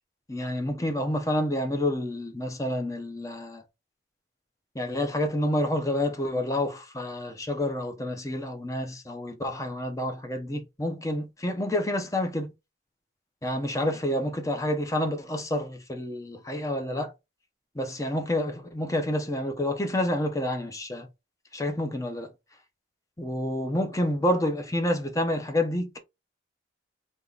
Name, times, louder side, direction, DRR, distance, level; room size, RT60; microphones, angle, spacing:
voice 1, 0.3-3.6 4.7-12.5 13.4-17.1 17.7-21.1 21.5-22.3 23.2-26.0, left 1 dB, 15° left, 0.7 m, -28 dB
3.7 x 2.9 x 3.8 m
head